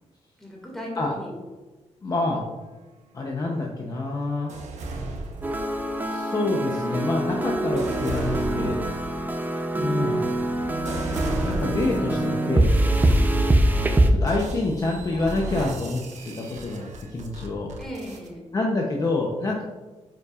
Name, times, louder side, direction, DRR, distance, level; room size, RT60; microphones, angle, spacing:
voice 1, 0.4-1.3 13.0-13.3 17.8-18.4, equal, 5° left, -3 dB, 2.0 m, -37 dB
voice 2, 2.0-2.4 3.1-4.5 6.1-8.8 9.8-10.2 11.4-12.7 14.1-17.7 18.5-19.6, left 2 dB, 30° left, -1 dB, 0.7 m, -27 dB
sound 1, 4.5-6.1 6.7-12.2 12.8-13.2 14.3-18.3, right 2 dB, 85° right, 1.0 m, -34 dB
sound 2, 5.4-14.1, right 1 dB, 15° right, 0.5 m, -24 dB
8.9 x 5.5 x 2.4 m, 1.2 s
wide cardioid pair, 160°, 12 cm